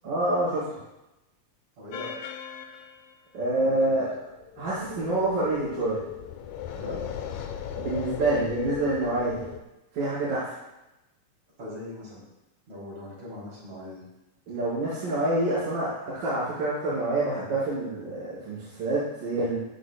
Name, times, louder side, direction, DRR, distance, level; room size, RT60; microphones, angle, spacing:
voice 1, 0.0-0.6 3.3-4.1 4.6-6.0 7.8-9.4 9.9-10.5 14.5-19.6, right 2 dB, 75° right, -13 dB, 6.5 m, -27 dB
voice 2, 1.8-2.2 3.6-4.0 6.7-7.0 11.6-12.2 12.7-14.0, left 1 dB, 50° right, -5 dB, 4.4 m, -40 dB
sound 1, 1.9-3.1 4.3-9.6, left 9 dB, 70° left, 1.9 m, -37 dB
16.5 x 11.5 x 2.3 m, 0.96 s
omnidirectional pair, 3.9 m